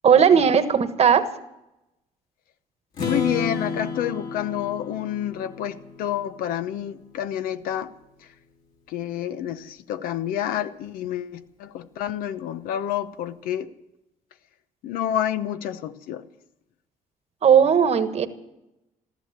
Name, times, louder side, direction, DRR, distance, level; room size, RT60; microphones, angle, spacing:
voice 1, 0.0-1.3 17.4-18.3, right 7 dB, 45° right, 10 dB, 1.4 m, -17 dB
Strum, 2.9-6.9, left 4 dB, 65° left, 3.5 m, -32 dB
voice 2, 3.0-7.9 8.9-13.7 14.8-16.2, left 10 dB, 85° left, 11 dB, 0.9 m, -29 dB
15.0 x 13.5 x 7.3 m, 0.89 s
cardioid pair, 100°, 15 cm